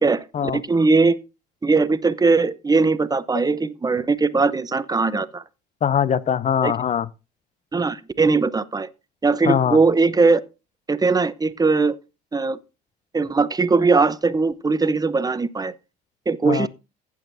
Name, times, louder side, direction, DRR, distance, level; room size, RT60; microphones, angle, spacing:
voice 1, 0.0-1.2 1.6-5.4 6.6-6.7 7.7-8.9 9.2-10.4 10.9-12.0 12.3-12.6 13.1-15.7 16.3-16.7, right 4 dB, 20° right, 0.8 m, -20 dB
voice 2, 5.8-7.1 9.5-9.8 16.4-16.7, left 8 dB, 35° left, 0.6 m, -21 dB
15.5 x 8.4 x 2.7 m
hypercardioid pair, 75°, 20 cm